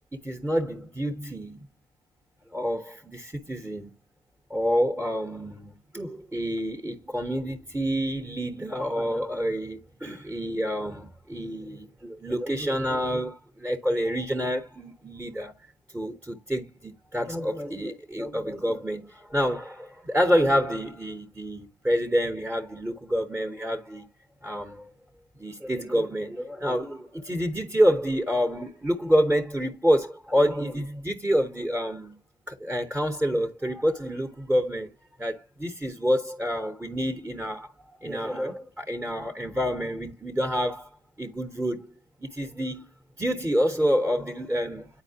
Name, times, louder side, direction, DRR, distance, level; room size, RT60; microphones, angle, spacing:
voice 1, 0.1-1.7 2.5-3.9 4.5-15.5 15.9-24.1 24.4-24.9 25.4-32.2 32.5-34.9 35.2-37.7 38.0-40.9 41.2-41.9 42.2-42.9 43.2-44.9, equal, 10° right, 1.0 m, -28 dB
9.4 x 4.3 x 2.8 m
cardioid pair, 90°, 20 cm